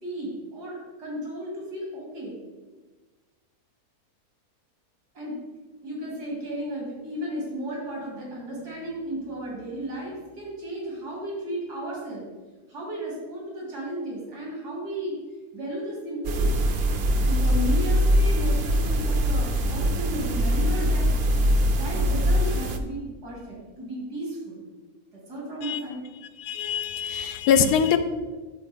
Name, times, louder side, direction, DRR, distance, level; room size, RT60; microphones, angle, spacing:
voice 1, 0.0-2.4 5.1-5.4 5.8-12.3 12.7-15.1 15.5-16.6 17.2-21.1 21.8-24.6 25.3-26.0, equal, 90° right, -5 dB, 3.0 m, -34 dB
sound 1, 16.2-22.8, equal, 60° right, 0.6 m, -22 dB
voice 2, 26.2-28.0, left 8 dB, 90° left, 9 dB, 1.1 m, -23 dB
13.0 x 4.3 x 3.5 m, 1.3 s
omnidirectional pair, 1.6 m